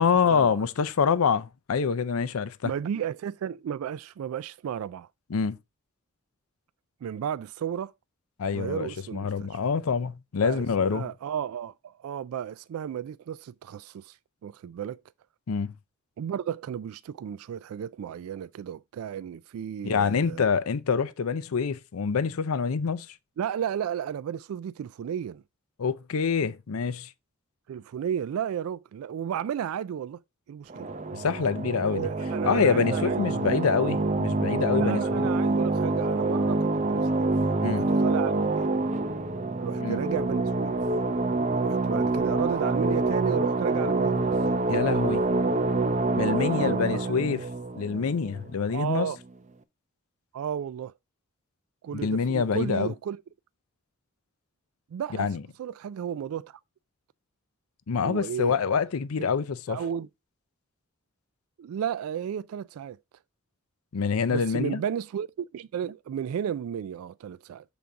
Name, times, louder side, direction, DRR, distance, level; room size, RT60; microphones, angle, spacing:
voice 1, 0.0-2.7 5.3-5.6 8.4-11.1 15.5-15.7 19.8-23.1 25.8-27.1 31.2-32.1 32.4-35.3 37.6-37.9 39.8-40.0 44.7-45.2 46.2-47.4 47.8-49.1 52.0-52.9 55.2-55.4 57.9-59.8 63.9-64.8, left 6 dB, 85° left, 0.5 m, -26 dB
voice 2, 2.6-5.1 7.0-7.9 8.5-9.6 10.4-10.6 10.9-14.2 14.4-15.0 16.2-20.5 23.4-25.4 27.7-30.2 30.5-30.9 31.8-33.7 34.8-37.3 37.6-38.7 39.6-40.8 41.6-44.3 46.6-47.0 48.7-49.2 50.3-50.9 51.8-53.2 54.9-56.6 58.0-58.5 59.2-59.3 59.7-60.1 61.6-63.0 64.3-65.3 65.5-67.6, right 8 dB, 85° right, 0.3 m, -33 dB
sound 1, 30.7-48.8, right 3 dB, 35° right, 0.5 m, -26 dB
6.9 x 3.9 x 4.6 m
head